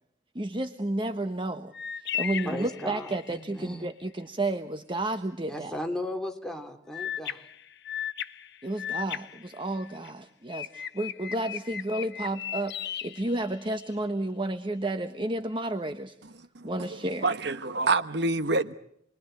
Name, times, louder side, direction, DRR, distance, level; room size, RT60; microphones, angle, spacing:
voice 1, 0.3-5.7 8.6-16.2 16.6-17.3, right 1 dB, 30° right, 1.2 m, -32 dB
sound 1, 1.7-3.4 6.9-10.1 10.5-14.0, left 9 dB, 65° left, 1.3 m, -37 dB
voice 2, 2.4-3.9 5.5-7.4, left 1 dB, 5° left, 3.2 m, -36 dB
voice 3, 16.5-17.0 17.2-18.7, right 3 dB, 65° right, 1.2 m, -27 dB
29.0 x 22.5 x 7.9 m
head